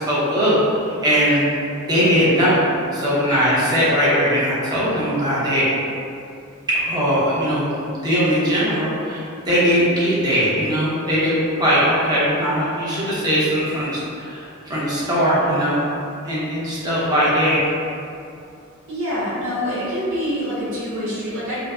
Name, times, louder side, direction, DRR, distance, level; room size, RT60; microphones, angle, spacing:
voice 1, 0.0-1.5 1.9-2.6 2.9-5.6 6.7-7.8 8.0-14.4 14.6-15.8 16.2-17.6, equal, 20° right, -9 dB, 1.0 m, -20 dB
voice 2, 18.9-21.6, equal, 75° right, -8 dB, 1.3 m, -25 dB
5.4 x 2.3 x 2.4 m, 2.6 s
head